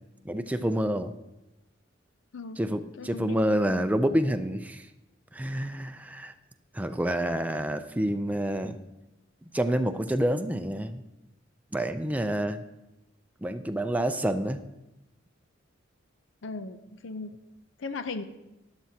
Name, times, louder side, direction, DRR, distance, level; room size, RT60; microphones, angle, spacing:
voice 1, 0.3-1.1 2.6-4.9 5.3-6.3 6.7-8.8 9.5-11.0 11.7-12.6 13.4-14.6, right 1 dB, 10° right, 7 dB, 0.4 m, -28 dB
voice 2, 2.9-3.4 16.4-17.4 17.8-18.2, left 3 dB, 75° left, 9 dB, 0.6 m, -37 dB
13.5 x 10.5 x 2.8 m, 0.95 s
head